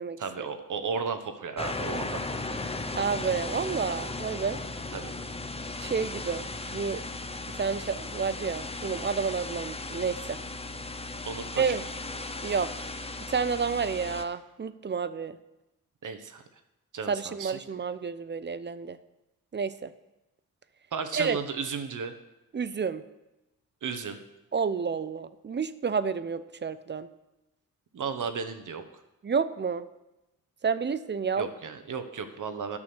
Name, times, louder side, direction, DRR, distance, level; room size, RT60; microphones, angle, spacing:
voice 1, 0.2-2.8 4.9-5.2 11.2-11.7 16.0-16.4 16.9-17.6 20.9-22.1 23.8-24.2 27.9-28.8 31.4-32.8, right 5 dB, 60° right, 9 dB, 1.1 m, -34 dB
sound 1, 1.6-14.2, left 2 dB, 15° left, 0.8 m, -36 dB
voice 2, 2.9-4.6 5.8-7.0 7.6-10.4 11.6-11.8 12.4-12.9 13.3-15.4 17.1-19.0 19.5-19.9 21.1-21.4 22.5-23.0 24.5-27.1 29.2-29.9 30.6-31.5, right 6 dB, 30° right, 14 dB, 0.6 m, -30 dB
9.7 x 6.2 x 6.1 m, 0.96 s
supercardioid pair, 50°, 34 cm